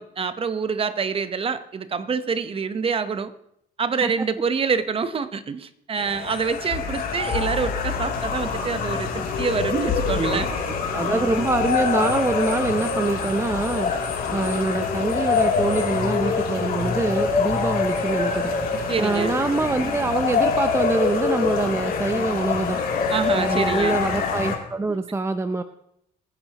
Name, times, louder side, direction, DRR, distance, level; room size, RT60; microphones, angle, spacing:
voice 1, 0.0-3.3 3.8-10.5 11.0-11.3 18.9-19.3 23.1-24.0 24.9-25.0, right 5 dB, 35° right, 11 dB, 1.0 m, -26 dB
sound 1, 6.0-24.6, left 5 dB, 60° left, 3.0 m, -25 dB
voice 2, 10.9-13.9 14.3-18.5 19.0-22.8 23.4-25.6, right 3 dB, 15° right, 9 dB, 0.6 m, -24 dB
25.5 x 10.0 x 3.0 m, 0.77 s
cardioid pair, 110°, 17 cm